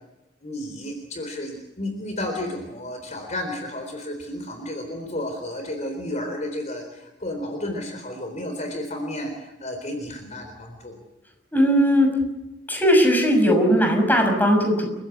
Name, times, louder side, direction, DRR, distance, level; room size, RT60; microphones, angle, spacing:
voice 1, 0.4-11.0, left 1 dB, 40° left, 5 dB, 4.0 m, -32 dB
voice 2, 11.5-12.1 12.7-14.9, equal, 10° left, 3 dB, 6.4 m, -18 dB
30.0 x 15.5 x 8.5 m, 0.97 s
head